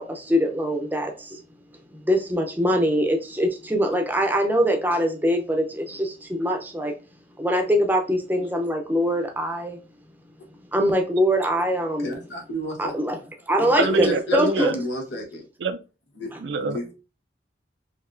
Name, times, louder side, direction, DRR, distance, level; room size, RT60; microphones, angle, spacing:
voice 1, 0.0-1.4 2.0-6.9 7.4-9.8 10.7-12.2 12.8-13.2 13.5-14.8, equal, 10° right, 0.6 m, -23 dB
voice 2, 12.0-12.9 13.8-15.4 16.2-16.9, left 1 dB, 90° left, 1.2 m, -31 dB
voice 3, 13.8-14.7 15.6-15.8 16.4-16.8, right 4 dB, 85° right, 0.5 m, -25 dB
4.3 x 2.8 x 2.5 m
head